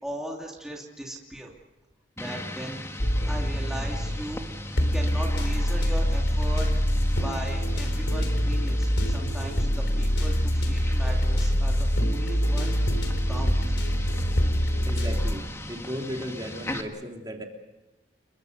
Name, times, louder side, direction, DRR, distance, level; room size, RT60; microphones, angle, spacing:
voice 1, 0.0-1.5 2.2-3.0 3.3-6.7 7.2-12.9 13.3-13.8, equal, 5° right, -2 dB, 2.8 m, -38 dB
sound 1, 2.2-16.8, left 1 dB, 15° left, 1.9 m, -39 dB
sound 2, 3.0-4.3 4.8-15.3, equal, 80° left, 4.0 m, -25 dB
voice 2, 14.9-15.4 15.7-17.4, equal, 25° right, 2 dB, 3.2 m, -35 dB
29.5 x 23.0 x 6.8 m, 1.1 s
head